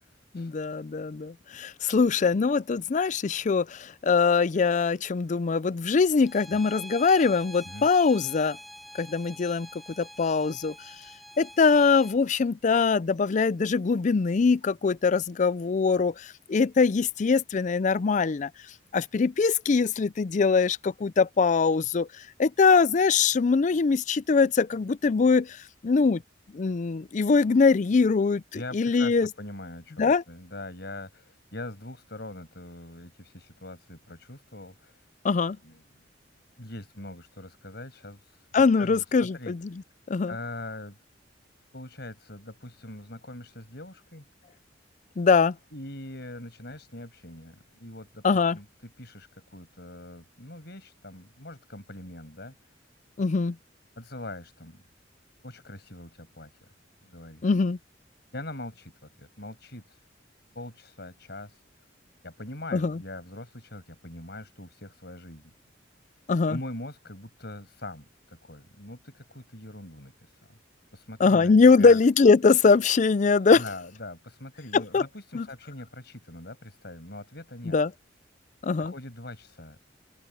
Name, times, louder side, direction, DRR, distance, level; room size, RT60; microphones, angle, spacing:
voice 1, 0.3-8.6 9.0-9.7 10.0-10.7 11.4-18.5 18.9-22.1 22.4-25.6 25.8-26.2 26.5-29.3 30.0-30.2 35.2-35.6 38.5-39.6 40.1-40.3 45.2-45.6 48.2-48.6 53.2-53.6 57.4-57.8 62.7-63.0 66.3-66.6 71.2-73.6 74.7-75.0 75.3-75.5 77.6-77.9 78.6-78.9, left 4 dB, 40° left, 0.4 m, -22 dB
Bowed string instrument, 6.2-12.2, equal, ahead, 1.7 m, -46 dB
voice 2, 28.5-35.0 35.6-35.8 36.6-39.5 40.3-41.0 41.7-44.2 45.7-52.5 54.0-54.8 55.4-56.5 57.0-57.5 58.3-60.0 60.5-61.6 62.2-65.4 66.5-70.6 70.9-72.0 72.3-72.4 73.5-77.8 78.8-79.8, left 1 dB, 60° left, 6.5 m, -42 dB
open air
head